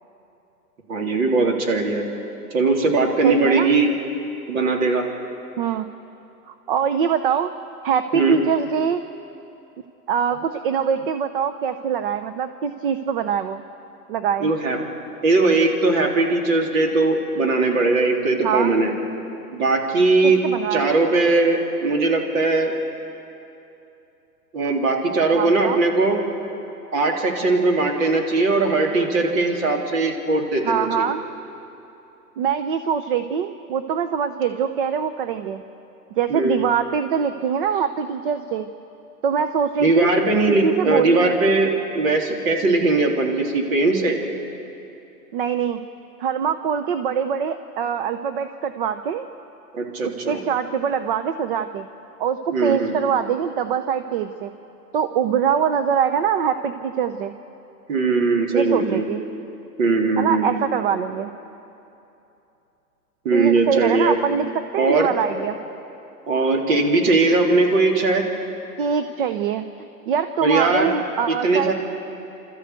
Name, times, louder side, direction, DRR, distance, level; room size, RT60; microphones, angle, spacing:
voice 1, 0.9-2.1 2.5-3.9 4.5-5.0 8.1-8.4 14.4-14.8 15.2-18.9 19.5-20.4 20.7-22.7 24.5-26.2 26.9-31.1 36.3-36.6 39.8-41.7 41.9-44.2 49.7-50.4 52.5-53.0 57.9-59.1 59.8-60.5 63.3-64.2 64.8-65.1 66.3-68.2 70.4-70.9 71.3-71.7, right 3 dB, 55° right, 1 dB, 3.7 m, -19 dB
voice 2, 3.2-3.7 5.6-5.9 6.5-7.5 7.8-9.0 10.1-13.6 14.1-14.5 18.4-18.8 20.2-20.9 25.3-25.8 30.6-31.2 32.4-35.6 36.1-38.7 39.2-40.1 40.5-41.3 45.3-45.8 46.2-49.3 50.0-51.9 52.2-54.5 54.9-57.3 58.5-59.2 60.2-61.3 63.3-65.6 68.8-71.7, right 7 dB, 35° right, 10 dB, 0.6 m, -23 dB
29.5 x 13.5 x 8.2 m, 2.9 s
hypercardioid pair, 145°, 49 cm